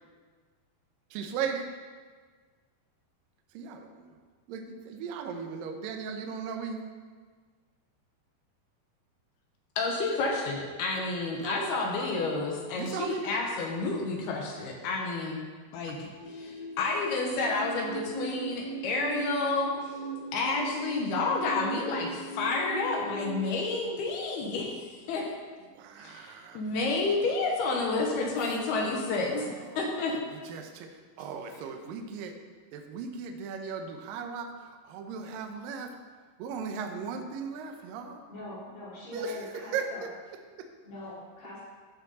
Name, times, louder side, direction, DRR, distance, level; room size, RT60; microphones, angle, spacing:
voice 1, 1.1-1.7 3.5-4.2 4.5-6.9 11.4-12.1 12.8-13.3 25.7-26.6 29.4-29.9 30.1-30.9 31.2-32.3 32.7-34.5 34.8-35.9 36.4-38.2 39.1-40.1, right 6 dB, 75° right, 4 dB, 2.1 m, -37 dB
voice 2, 9.8-15.4 15.7-19.7 20.3-25.3 26.0-30.1, left 3 dB, 70° left, 0 dB, 2.9 m, -30 dB
sound 1, 16.2-23.5, right 4 dB, 90° left, 3.4 m, -38 dB
voice 3, 38.3-40.0 40.8-41.6, left 1 dB, 55° left, -9 dB, 4.7 m, -43 dB
15.0 x 6.9 x 4.1 m, 1.5 s
omnidirectional pair, 4.9 m